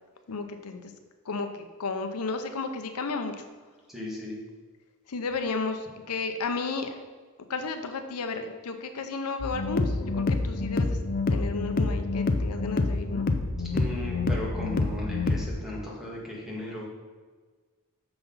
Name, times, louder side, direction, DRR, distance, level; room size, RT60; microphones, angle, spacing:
voice 1, 0.3-0.9 1.3-1.5 1.8-3.3 5.1-7.0 7.5-11.0 11.3-13.3, left 4 dB, 80° left, 6 dB, 0.7 m, -33 dB
voice 2, 3.9-4.4 13.6-16.9, left 1 dB, ahead, -4 dB, 1.9 m, -36 dB
sound 1, 9.4-15.5, left 3 dB, 40° left, 0.6 m, -27 dB
6.8 x 6.0 x 5.4 m, 1.4 s
head